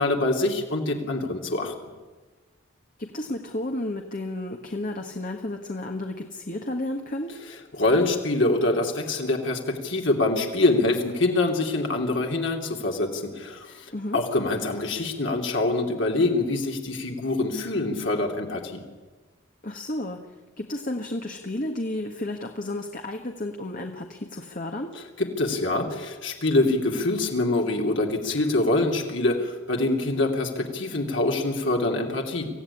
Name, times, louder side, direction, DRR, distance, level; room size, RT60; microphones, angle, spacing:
voice 1, 0.0-1.7 7.8-18.8 25.2-32.5, left 2 dB, 60° left, 1 dB, 2.8 m, -25 dB
voice 2, 3.0-7.4 13.9-14.2 19.6-24.9, left 1 dB, 40° left, 3 dB, 1.5 m, -32 dB
25.0 x 16.0 x 9.9 m, 1.3 s
head